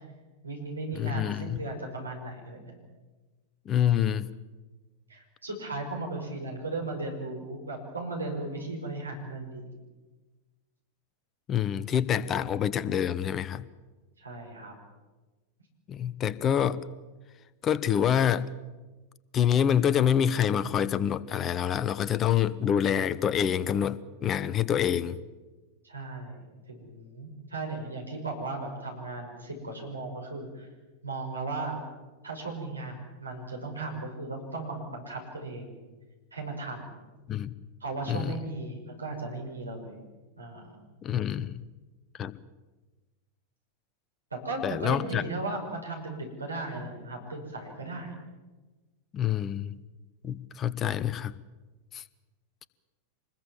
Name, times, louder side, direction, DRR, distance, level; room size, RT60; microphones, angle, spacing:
voice 1, 0.4-2.7 5.1-9.7 14.2-14.7 25.8-30.7 31.0-31.8 32.2-35.8 36.3-36.9 37.8-40.0 40.4-40.7 44.3-48.1, right 2 dB, 80° right, 1 dB, 5.9 m, -36 dB
voice 2, 0.9-1.6 3.7-4.3 11.5-13.7 15.9-16.8 17.6-18.5 19.3-25.2 37.3-37.5 38.1-38.4 41.0-41.6 42.2-42.3 44.6-45.2 49.1-49.8 50.2-51.3 51.9-52.0, left 9 dB, 30° left, 18 dB, 0.9 m, -26 dB
25.5 x 21.0 x 7.4 m, 1.2 s
figure-of-eight pair, 90°, 0 cm